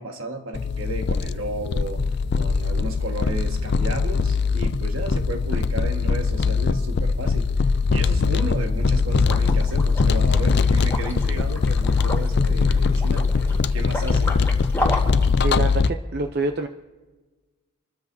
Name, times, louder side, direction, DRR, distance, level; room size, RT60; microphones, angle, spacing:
voice 1, 0.0-2.0 2.3-14.5, right 2 dB, 70° right, 4 dB, 1.5 m, -33 dB
sound 1, 0.5-15.9, left 4 dB, 50° left, 0.4 m, -21 dB
Liquid, 9.2-15.3, left 1 dB, 10° left, 1.6 m, -33 dB
voice 2, 15.4-16.7, right 3 dB, 50° right, 5 dB, 0.6 m, -26 dB
27.5 x 13.0 x 2.7 m, 1.3 s
head